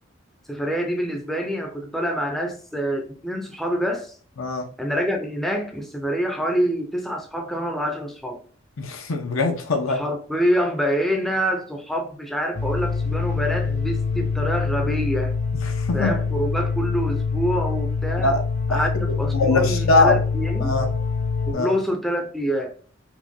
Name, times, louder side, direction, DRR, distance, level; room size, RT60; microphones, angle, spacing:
voice 1, 0.5-4.2 4.8-8.4 9.9-15.4 15.9-18.4 18.7-20.8 21.5-22.7, equal, ahead, 0.4 m, -26 dB
voice 2, 4.4-4.7 8.8-10.0 15.8-16.1 18.2-18.4 18.7-18.8 19.3-20.2 20.6-20.9 21.5-21.7, left 3 dB, 80° left, 0.7 m, -21 dB
sound 1, 12.5-21.5, left 4 dB, 35° left, 0.7 m, -25 dB
4.4 x 2.2 x 2.6 m
head